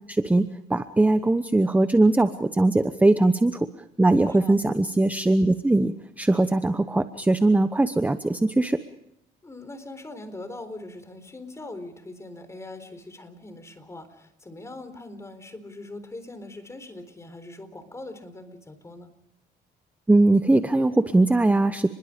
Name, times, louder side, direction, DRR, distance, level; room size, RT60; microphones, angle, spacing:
voice 1, 0.1-3.7 4.0-8.8 20.1-21.9, right 2 dB, 10° right, 10 dB, 0.9 m, -21 dB
voice 2, 9.4-19.1, left 2 dB, 15° left, 10 dB, 4.0 m, -41 dB
29.5 x 21.5 x 5.2 m, 0.82 s
cardioid pair, 110°, 17 cm